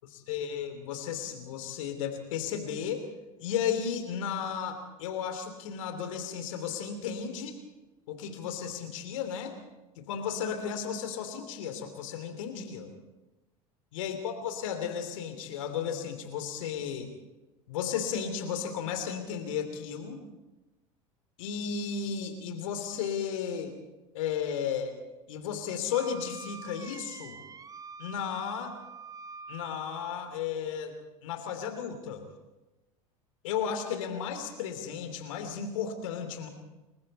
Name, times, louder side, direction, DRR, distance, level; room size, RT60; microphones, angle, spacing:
voice 1, 0.3-3.0 3.4-7.6 8.1-9.6 10.0-12.9 13.9-17.1 17.7-20.2 21.4-23.7 24.1-24.9 25.3-27.4 28.0-28.8 29.5-30.9 31.2-32.2 33.4-36.5, left 7 dB, 65° left, 7 dB, 3.1 m, -34 dB
Wind instrument woodwind instrument, 25.9-30.3, right 5 dB, 20° right, 0.9 m, -45 dB
29.0 x 21.5 x 4.2 m, 1.1 s
figure-of-eight pair, 75°, 18 cm